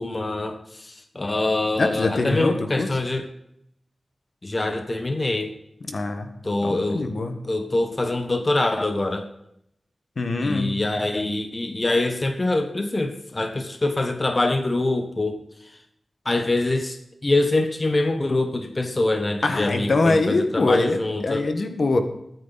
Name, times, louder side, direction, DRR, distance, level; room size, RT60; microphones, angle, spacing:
voice 1, 0.0-3.3 4.4-5.5 6.4-7.1 7.4-9.3 10.4-15.4 16.2-21.4, left 2 dB, 35° left, 6 dB, 1.4 m, -24 dB
voice 2, 1.8-2.9 5.9-6.3 6.6-7.4 10.2-10.8 19.4-22.0, left 3 dB, 65° left, 6 dB, 1.6 m, -23 dB
22.0 x 9.6 x 4.2 m, 0.76 s
wide cardioid pair, 105°, 0 cm